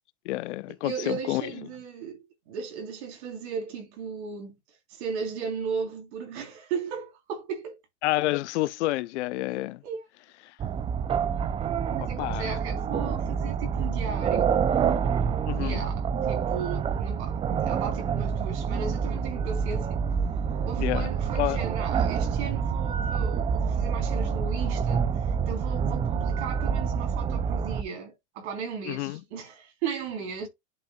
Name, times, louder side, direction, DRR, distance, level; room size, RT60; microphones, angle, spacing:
voice 1, 0.2-1.5 8.0-9.8 10.4-10.5 12.0-12.5 15.4-15.8 20.8-21.1 21.3-21.6 28.9-29.2, left 17 dB, 75° left, 0.7 m, -29 dB
voice 2, 0.8-4.5 4.9-7.8 9.8-10.0 11.9-14.6 15.6-20.0 20.7-25.0 25.5-30.5, right 6 dB, 70° right, 3.7 m, -36 dB
sound 1, 10.6-27.8, right 6 dB, 15° right, 0.4 m, -27 dB
10.5 x 5.2 x 2.3 m
supercardioid pair, 120°, 34 cm